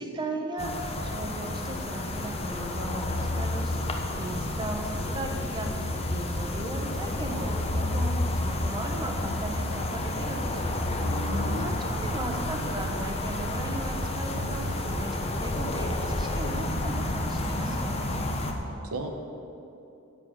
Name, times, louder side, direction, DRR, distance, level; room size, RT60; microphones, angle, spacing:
voice 1, 0.0-3.8 4.2-11.3 11.6-17.9, right 1 dB, 20° right, 2 dB, 1.1 m, -37 dB
sound 1, 0.6-18.5, left 1 dB, 30° left, 1.1 m, -32 dB
sound 2, 2.6-12.0, left 1 dB, 50° left, 0.9 m, -33 dB
sound 3, 9.1-17.0, right 2 dB, 65° right, 0.6 m, -41 dB
voice 2, 11.0-11.8 18.9-19.1, right 1 dB, 80° right, 5 dB, 1.1 m, -35 dB
11.0 x 7.6 x 8.5 m, 2.8 s
head